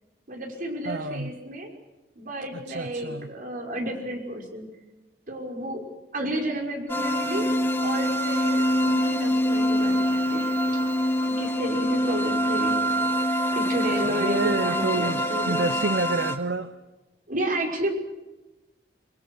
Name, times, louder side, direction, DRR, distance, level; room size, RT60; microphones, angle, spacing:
voice 1, 0.3-1.7 2.2-4.7 5.3-5.8 6.1-7.5 7.8-10.8 11.3-12.8 13.5-15.7 17.3-17.9, right 1 dB, 50° right, 5.9 m, -32 dB
voice 2, 0.9-1.3 2.7-3.3 14.0-15.2 15.5-16.7, right 3 dB, 75° right, 0.9 m, -28 dB
sound 1, 6.9-16.4, equal, 15° left, 1.9 m, -25 dB
29.0 x 22.0 x 6.4 m
head